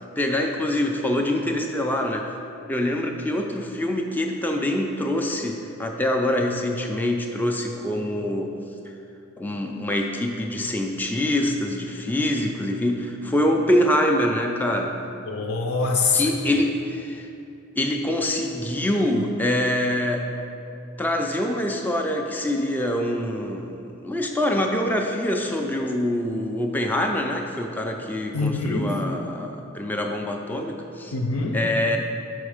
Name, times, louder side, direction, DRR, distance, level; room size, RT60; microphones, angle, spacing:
voice 1, 0.2-2.3 2.7-8.5 9.4-15.0 16.1-17.3 17.8-20.3 21.0-31.1 31.5-32.0, left 1 dB, 10° left, 2 dB, 0.3 m, -25 dB
voice 2, 15.3-16.2 28.3-29.0 31.1-31.6, left 4 dB, 80° left, 3 dB, 0.7 m, -24 dB
6.2 x 4.6 x 4.9 m, 2.7 s
head